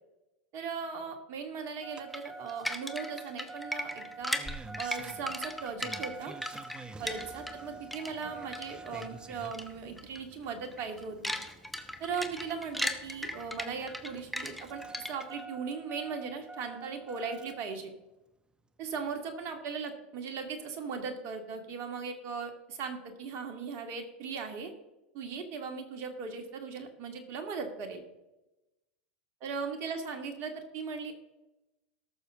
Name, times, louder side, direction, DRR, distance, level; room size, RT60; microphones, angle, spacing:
voice 1, 0.5-4.4 4.8-6.3 7.0-11.3 12.0-17.9 18.8-24.7 25.1-28.0 29.4-31.1, right 5 dB, 50° right, 5 dB, 2.4 m, -38 dB
Engine starting, 1.8-17.7 19.0-19.1, right 3 dB, 15° right, 0.9 m, -48 dB
sound 1, 2.1-7.6 7.9-9.1 9.5-9.7 10.0-10.2 10.6-15.4, equal, ahead, 1.2 m, -37 dB
18.5 x 6.7 x 3.8 m, 0.97 s
hypercardioid pair, 100°, 6 cm